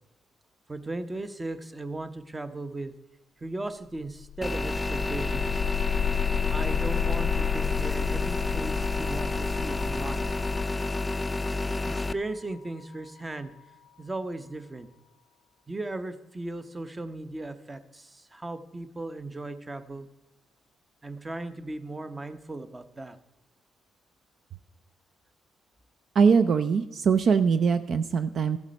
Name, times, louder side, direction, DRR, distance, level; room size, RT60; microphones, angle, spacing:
voice 1, 0.7-2.9 3.4-5.6 6.5-10.3 11.8-13.5 14.0-14.9 15.7-20.1 21.0-23.2, right 2 dB, 20° right, 11 dB, 0.8 m, -37 dB
sound 1, 4.1-14.0, left 9 dB, 80° left, 0.4 m, -33 dB
sound 2, 4.4-12.1, left 2 dB, 15° left, 0.4 m, -30 dB
voice 2, 26.1-28.6, right 6 dB, 55° right, 12 dB, 0.4 m, -22 dB
14.0 x 7.2 x 5.2 m, 1.0 s
cardioid pair, 90°, 0 cm